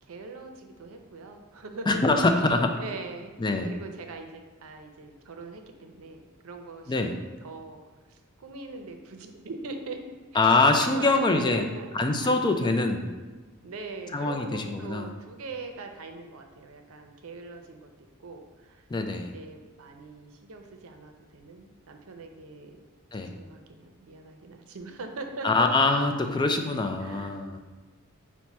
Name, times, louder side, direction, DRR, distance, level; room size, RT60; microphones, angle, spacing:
voice 1, 0.0-2.0 2.3-3.3 3.6-7.8 8.1-10.0 10.3-11.9 12.2-12.7 13.6-17.9 18.2-18.9 19.2-22.8 23.1-25.7 27.0-27.6, right 3 dB, 85° right, 5 dB, 0.6 m, -42 dB
voice 2, 1.9-2.7 3.4-3.7 6.9-7.1 10.4-11.6 11.9-13.1 14.1-15.0 18.9-19.3 23.1-23.3 25.4-27.6, left 3 dB, 20° left, 5 dB, 0.3 m, -24 dB
5.9 x 2.1 x 4.1 m, 1.3 s
head